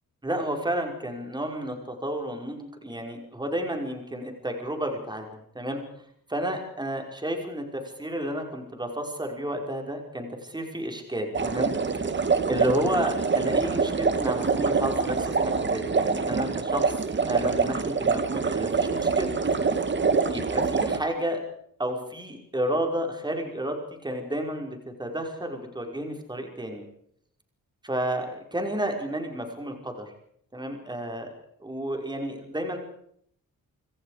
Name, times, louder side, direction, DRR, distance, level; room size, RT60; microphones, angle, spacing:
voice 1, 0.2-5.8 6.3-11.7 12.5-17.0 17.2-19.3 20.3-21.4 21.8-26.8 27.8-30.1 30.5-31.3 31.6-32.8, right 1 dB, 10° right, 3 dB, 5.3 m, -31 dB
sound 1, 11.3-21.0, right 4 dB, 35° right, 2.0 m, -25 dB
27.0 x 26.5 x 5.0 m, 0.67 s
wide cardioid pair, 175°, 34 cm